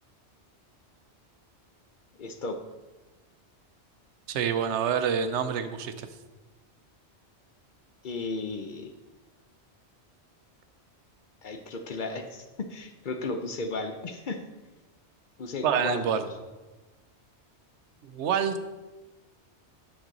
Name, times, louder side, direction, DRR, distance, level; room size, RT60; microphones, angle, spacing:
voice 1, 2.2-2.6 8.0-8.9 11.4-14.4 15.4-16.1, left 3 dB, 50° left, 6 dB, 0.7 m, -34 dB
voice 2, 4.3-6.1 15.6-16.3 18.0-18.6, right 7 dB, 80° right, 10 dB, 0.9 m, -27 dB
8.8 x 6.3 x 3.9 m, 1.2 s
omnidirectional pair, 1.2 m